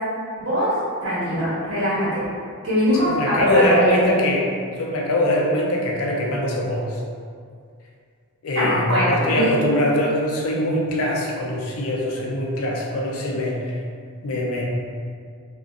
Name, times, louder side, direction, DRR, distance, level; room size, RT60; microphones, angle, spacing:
voice 1, 0.4-0.7 1.0-2.3 2.6-4.0 8.5-9.5, equal, 70° right, -10 dB, 1.1 m, -22 dB
voice 2, 3.0-4.5 4.8-7.0 8.4-13.8 14.2-14.7, left 1 dB, 85° left, -1 dB, 0.4 m, -22 dB
2.4 x 2.1 x 2.5 m, 2.2 s
head